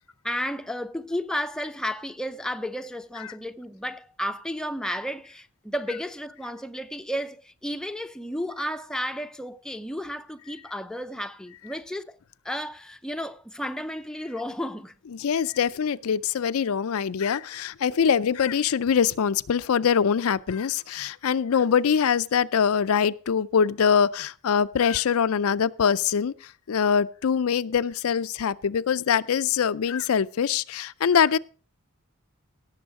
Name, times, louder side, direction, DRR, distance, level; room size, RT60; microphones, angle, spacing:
voice 1, 0.2-12.2 12.4-14.9, equal, 5° left, 0.5 m, -33 dB
voice 2, 15.1-31.4, left 7 dB, 75° left, 0.4 m, -23 dB
17.5 x 7.1 x 4.8 m
head